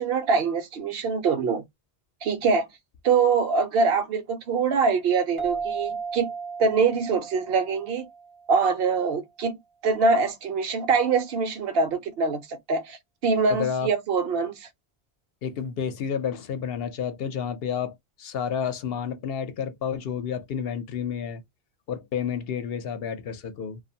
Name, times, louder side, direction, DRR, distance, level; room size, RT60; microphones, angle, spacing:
voice 1, 0.0-1.6 2.2-2.7 3.0-6.3 6.6-8.1 8.5-9.6 9.8-13.0 13.2-14.7, right 5 dB, 70° right, 0.9 m, -24 dB
sound 1, 5.4-8.7, right 5 dB, 40° right, 0.5 m, -35 dB
voice 2, 13.6-13.9 15.4-21.4 21.9-23.8, left 7 dB, 70° left, 0.8 m, -30 dB
2.5 x 2.3 x 2.7 m
omnidirectional pair, 1.1 m